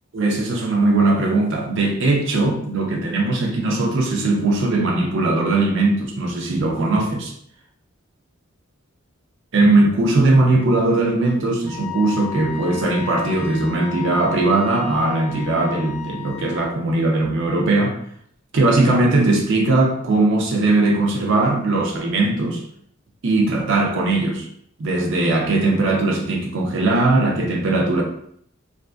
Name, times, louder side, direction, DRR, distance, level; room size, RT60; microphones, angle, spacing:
voice 1, 0.1-7.3 9.5-18.0 18.5-22.6 23.2-24.5 24.8-28.0, right 2 dB, 60° right, 0.5 m, -19 dB
Wind instrument woodwind instrument, 11.7-16.6, left 11 dB, 85° left, 0.7 m, -35 dB
2.5 x 2.3 x 2.4 m
head